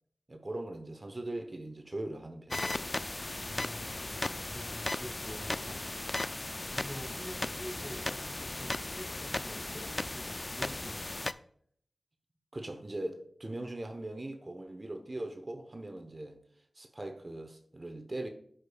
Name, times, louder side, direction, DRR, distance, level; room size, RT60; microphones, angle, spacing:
voice 1, 0.3-2.8 12.5-16.4 16.7-18.3, right 1 dB, 45° right, 0.8 m, -40 dB
sound 1, 2.5-11.3, left 2 dB, 40° left, 0.3 m, -36 dB
voice 2, 3.4-5.9 6.7-11.3, equal, 25° left, 2.0 m, -47 dB
11.0 x 5.0 x 2.3 m
cardioid pair, 40°, 0 cm